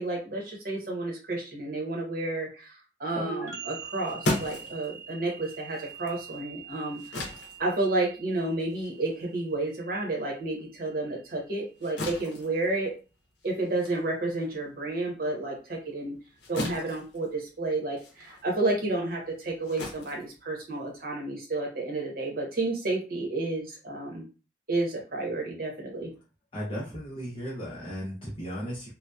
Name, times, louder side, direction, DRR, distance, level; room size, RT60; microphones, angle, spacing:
voice 1, 0.0-7.0 7.6-12.9 13.4-16.1 16.5-24.2 24.7-26.1, right 2 dB, 50° right, -1 dB, 0.8 m, -31 dB
sound 1, 3.2-10.7, right 4 dB, 20° right, 0.6 m, -43 dB
sound 2, 3.7-10.5 10.9-21.1, left 1 dB, 65° left, 0.7 m, -39 dB
voice 2, 26.5-28.9, equal, 30° left, -6 dB, 0.6 m, -35 dB
2.7 x 2.1 x 2.3 m, 0.33 s
head